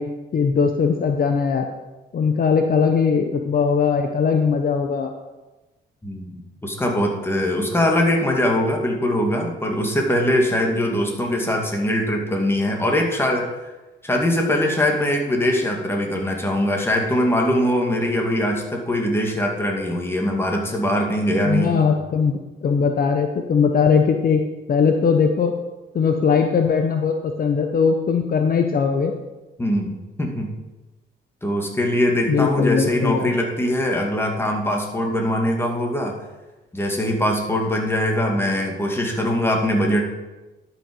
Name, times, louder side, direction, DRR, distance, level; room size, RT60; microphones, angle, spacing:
voice 1, 0.0-1.7 2.1-5.1 21.4-24.4 24.7-25.5 25.9-29.1 32.3-33.3, left 6 dB, 50° left, 5 dB, 0.8 m, -20 dB
voice 2, 6.0-13.5 14.0-21.9 29.6-30.5 31.4-36.2 36.7-40.1, left 1 dB, 10° left, 1 dB, 2.1 m, -22 dB
12.0 x 5.9 x 5.4 m, 1.1 s
cardioid pair, 90°, 20 cm